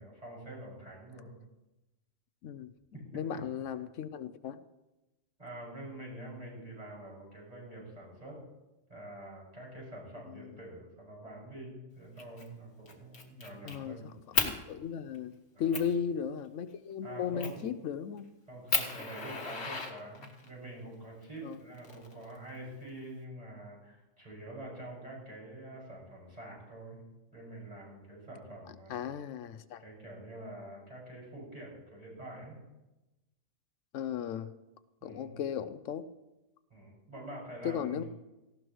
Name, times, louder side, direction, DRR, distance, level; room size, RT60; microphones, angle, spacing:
voice 1, 0.0-1.4 2.9-3.2 5.4-8.4 8.9-14.1 15.5-15.7 17.0-17.6 18.5-27.0 27.3-29.1 29.8-32.6 35.0-35.3 36.7-38.1, right 1 dB, 30° right, -5 dB, 6.5 m, -46 dB
voice 2, 3.1-4.6 10.3-10.5 13.6-14.0 14.3-18.3 21.4-21.6 28.9-29.8 33.9-34.5 35.0-36.1 37.6-38.0, left 8 dB, 85° left, 12 dB, 1.0 m, -36 dB
Fire, 12.2-12.5 12.9-13.8 14.3-14.5 15.1-15.2 15.7-15.9 17.4-17.7 18.2-18.3 18.7-20.5 21.5-22.5, left 4 dB, 60° left, 1.7 m, -33 dB
18.0 x 15.5 x 3.1 m, 1.0 s
omnidirectional pair, 1.3 m